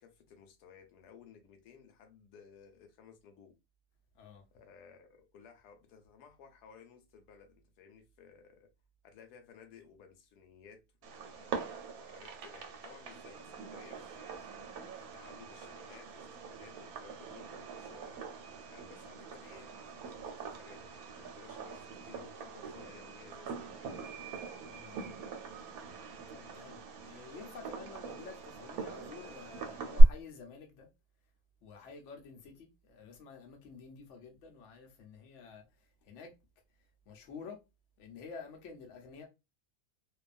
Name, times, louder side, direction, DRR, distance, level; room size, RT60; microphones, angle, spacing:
voice 1, 0.0-3.5 4.5-8.7 9.0-11.5 12.0-18.2 18.7-24.0, left 6 dB, 85° left, 1.1 m, -57 dB
Fireworks, 11.0-30.0, right 1 dB, 70° right, 1.1 m, -38 dB
voice 2, 24.7-25.2 26.3-30.9 31.6-36.3 37.1-37.6 38.0-39.3, left 5 dB, 60° left, 0.9 m, -50 dB
2.6 x 2.3 x 2.4 m
omnidirectional pair, 1.7 m